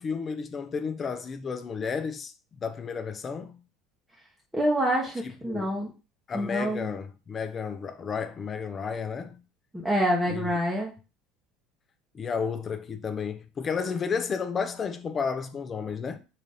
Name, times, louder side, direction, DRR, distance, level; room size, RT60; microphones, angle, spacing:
voice 1, 0.0-2.3 2.6-3.6 5.5-5.7 6.3-9.4 10.3-10.5 12.1-16.2, left 6 dB, 30° left, 0.5 m, -32 dB
voice 2, 4.5-5.9 6.3-6.9 9.7-10.9, equal, 5° right, 0.8 m, -26 dB
3.9 x 2.5 x 3.3 m
supercardioid pair, 110°, 0 cm